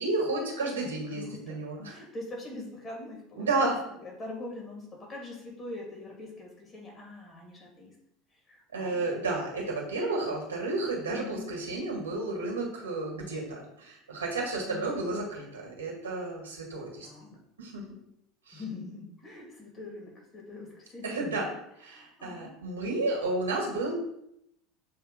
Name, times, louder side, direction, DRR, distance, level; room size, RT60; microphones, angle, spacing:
voice 1, 0.0-2.0 3.4-3.8 8.7-17.1 17.6-17.8 18.5-18.6 21.0-21.5 21.8-23.9, right 2 dB, 80° right, -1 dB, 2.0 m, -32 dB
voice 2, 1.1-3.7 4.0-8.0 8.5-9.1 11.1-11.6 14.5-15.1 17.0-17.3 18.5-21.2 21.4-21.5 21.9-22.5, left 2 dB, 30° left, -1 dB, 2.6 m, -43 dB
7.1 x 3.4 x 5.1 m, 0.77 s
figure-of-eight pair, 70°, 0 cm